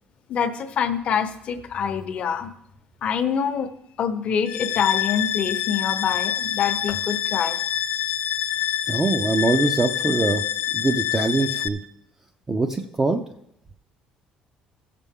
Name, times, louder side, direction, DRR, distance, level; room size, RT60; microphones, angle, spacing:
voice 1, 0.3-2.5 3.0-3.7 4.0-7.6, left 7 dB, 50° left, 8 dB, 0.8 m, -25 dB
sound 1, 4.5-11.7, left 11 dB, 90° left, 0.5 m, -26 dB
voice 2, 8.9-10.4 10.7-11.8 12.5-13.2, right 3 dB, 20° right, 4 dB, 0.5 m, -23 dB
16.0 x 6.8 x 3.6 m, 0.78 s
cardioid pair, 135°, 3 cm